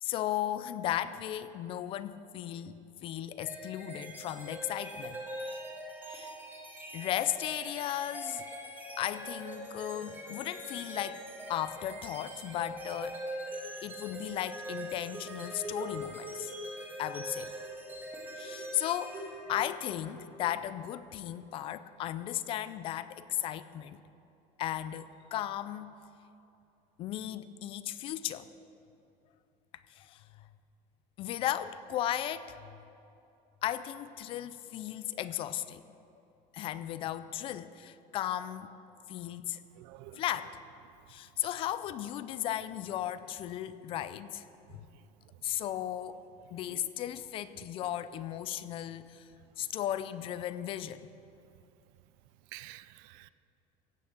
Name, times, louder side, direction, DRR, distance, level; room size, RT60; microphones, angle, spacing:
voice 1, 0.0-5.2 6.1-6.4 6.9-8.5 9.0-11.2 11.5-13.2 13.8-16.5 17.0-17.5 18.4-24.0 24.6-25.9 27.0-28.5 29.7-30.5 31.2-32.8 33.6-35.8 36.5-38.7 39.1-39.6 40.2-40.6 41.1-44.4 44.7-44.9 45.4-46.2 46.5-49.3 49.6-51.1, left 12 dB, 35° left, 14 dB, 0.4 m, -36 dB
sound 1, 3.4-20.0, right 1 dB, 10° right, 1.5 m, -42 dB
voice 2, 39.8-40.2 52.5-53.3, right 17 dB, 65° right, 16 dB, 0.4 m, -49 dB
15.5 x 6.0 x 8.4 m, 2.7 s
cardioid pair, 175°, 16 cm